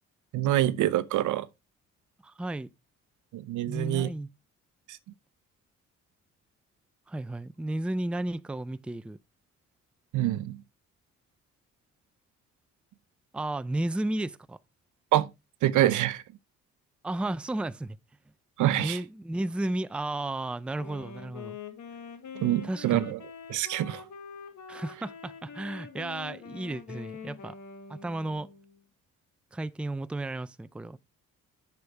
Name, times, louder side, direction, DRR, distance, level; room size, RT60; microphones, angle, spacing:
voice 1, 0.3-1.5 3.3-4.1 4.9-5.0 10.1-10.6 15.1-15.3 15.6-16.2 18.6-19.0 22.3-23.2 23.5-24.0, right 13 dB, 80° right, 0.7 m, -26 dB
voice 2, 2.2-2.7 3.7-4.3 7.1-9.2 13.3-14.6 17.0-18.0 18.7-21.6 22.6-23.1 24.7-27.6 27.9-28.5 29.5-31.0, right 1 dB, 5° right, 0.4 m, -33 dB
Wind instrument woodwind instrument, 20.8-28.8, left 6 dB, 75° left, 1.9 m, -44 dB
7.9 x 7.2 x 3.3 m
cardioid pair, 90°, 30 cm